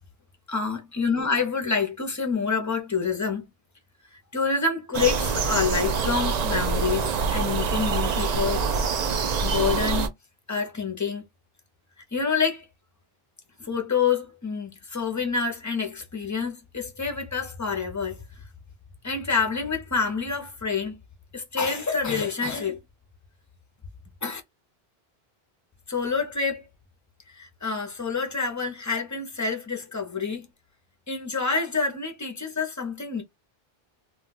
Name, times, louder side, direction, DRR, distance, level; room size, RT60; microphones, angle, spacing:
voice 1, 0.5-3.5 4.1-8.7 9.4-10.1 10.5-11.2 12.1-12.7 13.6-18.2 19.0-20.9 21.3-22.8 24.2-24.4 25.9-26.7 27.4-30.5 31.1-33.2, left 5 dB, 20° left, 0.5 m, -27 dB
sound 1, 4.9-10.1, right 5 dB, 50° right, 0.5 m, -25 dB
2.3 x 2.2 x 3.9 m
omnidirectional pair, 1.0 m